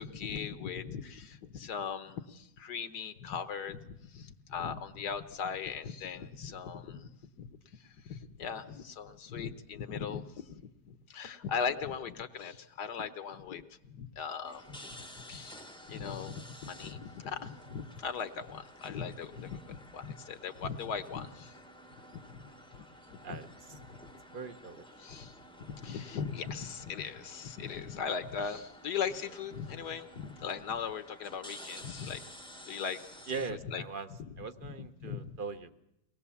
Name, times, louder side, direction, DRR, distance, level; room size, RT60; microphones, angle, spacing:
voice 1, 0.0-7.1 7.4-7.5 7.8-13.6 13.9-14.8 15.3-21.5 22.1-22.4 22.7-22.8 23.1-23.4 25.0-32.2 32.6-33.0 33.5-33.8 34.2-34.3 34.8-35.4, left 6 dB, 70° left, 10 dB, 1.6 m, -39 dB
sound 1, 14.4-33.5, equal, 5° left, 0.7 m, -52 dB
voice 2, 24.3-24.8 33.3-34.1 34.4-35.7, right 4 dB, 40° right, 9 dB, 0.8 m, -40 dB
23.5 x 19.5 x 7.1 m, 0.86 s
omnidirectional pair, 1.9 m